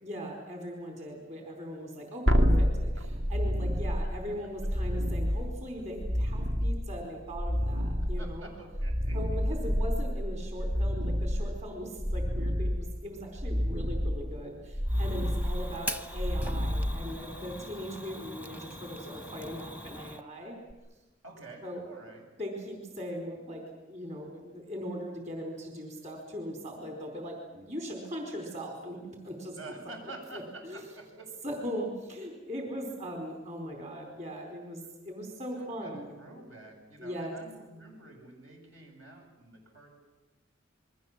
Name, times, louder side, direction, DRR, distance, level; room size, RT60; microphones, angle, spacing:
voice 1, 0.0-8.5 9.1-20.6 21.6-21.8 22.4-29.6 30.0-30.1 30.6-30.8 31.4-36.1 37.0-37.4, equal, 35° right, 2 dB, 4.5 m, -39 dB
sound 1, 2.3-17.6 20.7-20.8, equal, 65° right, 2.4 m, -29 dB
voice 2, 8.0-9.2 15.6-16.0 21.2-22.2 29.5-31.3 35.6-39.9, right 2 dB, 80° right, 1 dB, 7.9 m, -48 dB
Fire, 14.9-20.2, equal, 10° right, 0.9 m, -42 dB
28.5 x 22.5 x 7.5 m, 1.1 s
head